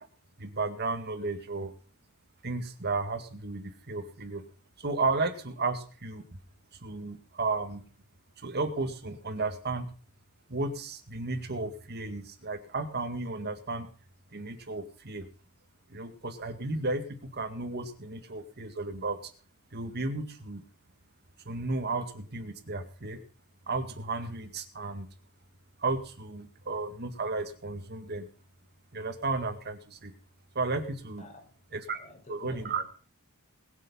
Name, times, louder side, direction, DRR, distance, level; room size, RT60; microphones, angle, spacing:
voice 1, 0.4-1.7 2.4-4.4 4.8-6.2 6.8-7.8 8.4-9.9 10.5-13.9 14.3-15.3 15.9-19.3 19.7-20.6 21.5-23.2 23.7-25.1 25.8-28.3 28.9-30.1 30.6-31.2 31.7-32.0 32.3-32.8, right 3 dB, 50° right, 2.0 m, -33 dB
voice 2, 31.2-31.6 31.9-32.8, left 2 dB, 35° left, 5.4 m, -51 dB
21.0 x 7.4 x 5.6 m
head